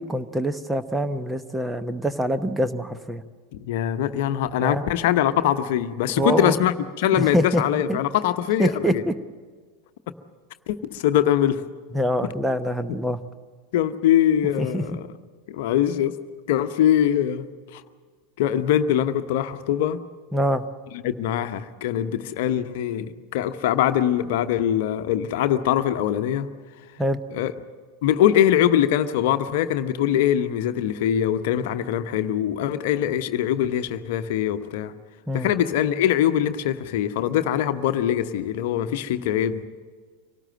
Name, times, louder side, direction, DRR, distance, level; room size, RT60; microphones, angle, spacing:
voice 1, 0.0-3.2 4.6-4.8 6.2-6.5 7.2-7.6 7.9-8.0 8.6-9.1 11.9-13.2 14.6-14.8 20.3-20.6 27.0-27.2 35.3-35.5, equal, 10° right, 11 dB, 1.0 m, -24 dB
voice 2, 3.5-9.0 10.7-11.6 13.7-15.1 15.5-16.1 16.5-17.5 17.7-17.8 18.4-20.0 21.0-26.5 27.3-27.5 28.0-34.9 35.3-39.7, left 10 dB, 55° left, 9 dB, 0.9 m, -22 dB
25.0 x 18.5 x 7.7 m, 1.5 s
figure-of-eight pair, 85°, 0 cm